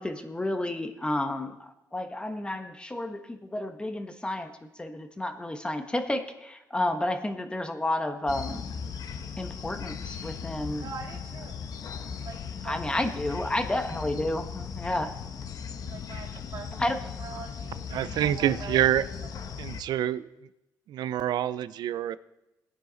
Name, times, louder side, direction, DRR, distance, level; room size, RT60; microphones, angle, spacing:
voice 1, 0.0-8.6 9.4-10.9 12.6-15.1 16.7-17.0, left 1 dB, 15° left, 6 dB, 1.1 m, -31 dB
sound 1, 8.3-19.8, left 6 dB, 55° left, 1.1 m, -38 dB
voice 2, 10.8-11.6 12.3-13.2 15.9-17.8 18.1-18.8, right 5 dB, 55° right, 1 dB, 2.1 m, -43 dB
voice 3, 17.9-19.0 19.6-20.3 20.9-22.2, right 11 dB, 75° right, 16 dB, 0.5 m, -26 dB
17.5 x 9.9 x 4.0 m, 0.94 s
cardioid pair, 105°, 7 cm